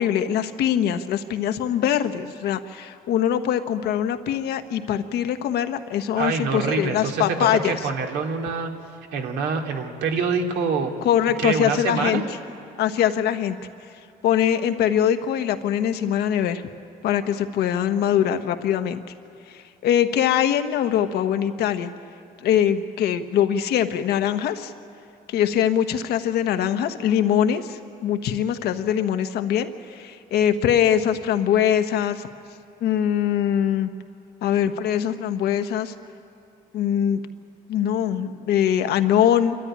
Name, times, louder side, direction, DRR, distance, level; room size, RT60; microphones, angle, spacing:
voice 1, 0.0-7.8 11.0-12.2 12.8-13.6 14.2-16.6 17.0-19.0 19.5-21.9 22.4-24.7 25.3-32.3 32.8-33.9 34.4-35.9 36.7-37.2 37.7-39.6, left 9 dB, 75° left, 9 dB, 1.2 m, -22 dB
voice 2, 6.2-7.2 7.5-8.7 9.1-10.9 11.4-12.2, right 5 dB, 80° right, 3 dB, 2.4 m, -25 dB
27.5 x 13.0 x 10.0 m, 2.5 s
cardioid pair, 110°, 17 cm